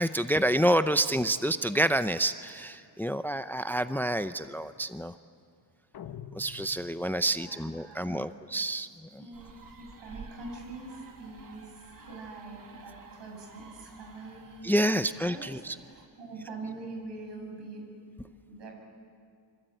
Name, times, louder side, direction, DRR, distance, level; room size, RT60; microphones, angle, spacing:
voice 1, 0.0-5.1 6.3-9.3 14.6-15.8, right 1 dB, 5° left, 11 dB, 0.6 m, -28 dB
sound 1, 5.9-7.4, left 9 dB, 55° left, 1.6 m, -45 dB
voice 2, 7.2-8.3 9.2-14.9 15.2-17.8 18.5-18.7, right 2 dB, 75° right, 1 dB, 7.4 m, -44 dB
sound 2, 9.3-16.1, right 4 dB, 50° right, 2.7 m, -51 dB
25.5 x 25.5 x 9.2 m, 2.3 s
cardioid pair, 110°, 43 cm